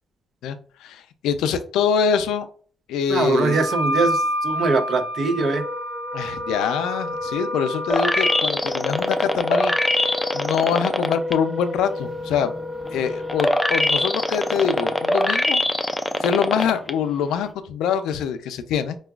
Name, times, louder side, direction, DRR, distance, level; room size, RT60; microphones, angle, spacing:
voice 1, 0.4-2.5 2.9-3.6 6.1-12.5 12.9-15.6 16.2-19.0, left 7 dB, 90° left, 10 dB, 0.4 m, -24 dB
voice 2, 3.1-5.6, right 3 dB, 60° right, 9 dB, 0.5 m, -22 dB
Wind instrument woodwind instrument, 3.5-8.4, equal, 75° right, 0.8 m, -28 dB
Wind instrument woodwind instrument 2, 5.3-15.4, left 2 dB, 10° right, 0.9 m, -33 dB
sound 1, 7.9-11.3 11.8-16.9 17.4-17.5, left 1 dB, 10° left, 0.3 m, -22 dB
4.6 x 2.2 x 2.3 m, 0.43 s
cardioid pair, 90°, 0 cm